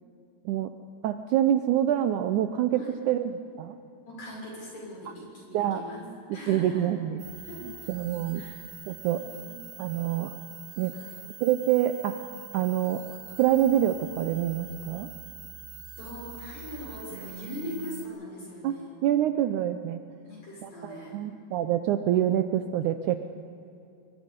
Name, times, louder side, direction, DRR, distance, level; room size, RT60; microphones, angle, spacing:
voice 1, 1.0-3.8 5.5-5.8 6.5-7.2 7.9-8.5 8.9-9.2 9.8-10.3 10.8-10.9 11.4-12.2 12.5-13.0 13.4-15.1 18.6-18.8 19.0-20.0 20.6-23.2, right 11 dB, 80° right, 9 dB, 1.9 m, -26 dB
voice 2, 4.0-6.1 6.3-6.9 7.4-7.9 8.3-8.6 9.2-9.6 10.9-11.1 16.0-18.9 20.1-21.1 22.1-22.2, left 1 dB, 50° left, -4 dB, 7.8 m, -41 dB
sound 1, 7.2-18.1, right 7 dB, 60° right, 2.5 m, -44 dB
25.0 x 22.5 x 5.3 m, 2.6 s
omnidirectional pair, 4.1 m